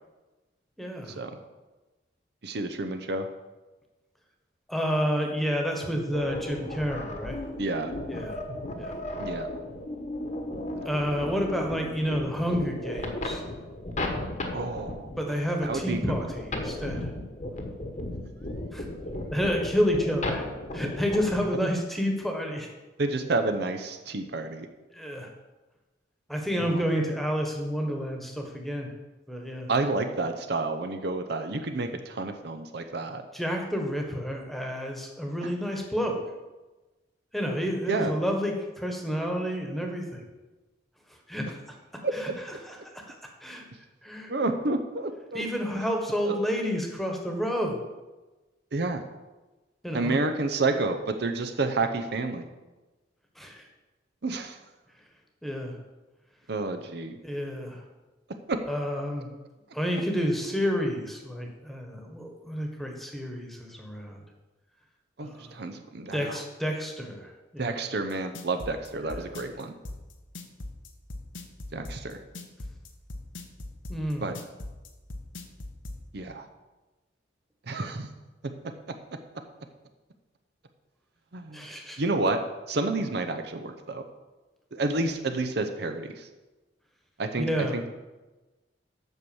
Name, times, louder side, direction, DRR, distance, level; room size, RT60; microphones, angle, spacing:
voice 1, 0.8-1.2 4.7-7.4 8.1-8.4 8.8-9.0 10.8-13.4 15.2-17.1 18.7-18.9 19.3-20.5 20.7-22.7 24.9-25.3 26.3-28.9 29.3-29.7 33.3-36.2 37.3-40.2 41.1-42.3 42.6-43.2 43.4-43.6 44.0-44.3 45.3-47.8 49.8-50.2 53.4-53.6 55.4-55.8 57.2-57.8 58.7-59.3 59.7-64.2 65.2-65.5 66.1-67.8 69.1-69.3 73.9-74.3 81.5-82.0 87.4-87.8, equal, ahead, 2 dB, 1.3 m, -30 dB
voice 2, 2.4-3.3 7.6-7.9 9.2-9.5 10.7-10.9 14.5-15.1 15.6-16.3 23.0-24.7 26.6-26.9 29.7-33.2 35.4-35.5 37.9-38.1 42.0-42.1 44.3-45.4 46.2-46.4 48.7-49.0 49.9-52.5 54.2-54.6 56.5-57.2 58.5-58.6 65.2-66.4 67.6-69.7 71.7-72.2 74.2-74.4 76.1-76.5 77.7-78.1 81.3-81.7 82.0-82.4 82.7-84.0 84.7-86.3 87.2-87.5 87.7-87.9, right 3 dB, 60° right, 7 dB, 0.7 m, -30 dB
sound 1, 6.1-21.5, left 1 dB, 40° left, 1.2 m, -35 dB
sound 2, 68.1-76.0, left 2 dB, 90° left, 1.2 m, -39 dB
8.1 x 6.2 x 7.1 m, 1.2 s
head